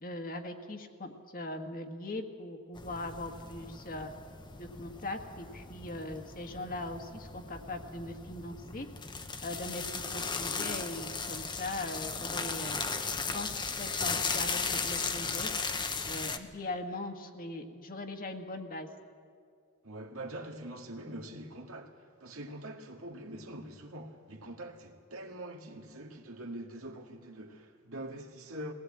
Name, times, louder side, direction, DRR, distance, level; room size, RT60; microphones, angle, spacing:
voice 1, 0.0-4.1 4.6-8.9 9.4-15.5 16.0-18.9, left 2 dB, 40° left, 1.6 m, -40 dB
sound 1, 2.8-16.4, left 4 dB, 20° left, 0.9 m, -36 dB
voice 2, 19.8-28.7, right 1 dB, 75° right, 2.0 m, -44 dB
21.0 x 17.5 x 8.8 m
head